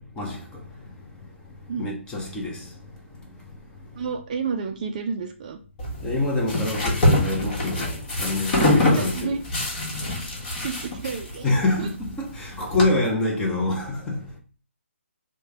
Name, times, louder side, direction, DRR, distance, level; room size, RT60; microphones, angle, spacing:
voice 1, 1.8-2.6 6.0-9.4 11.4-14.2, left 2 dB, 10° left, 0.6 m, -26 dB
voice 2, 4.0-5.6 8.9-9.4 10.6-11.9, right 5 dB, 35° right, 0.4 m, -31 dB
sound 1, 5.8-12.8, left 1 dB, 40° left, 1.3 m, -25 dB
3.1 x 2.2 x 3.4 m
figure-of-eight pair, 145°, 7 cm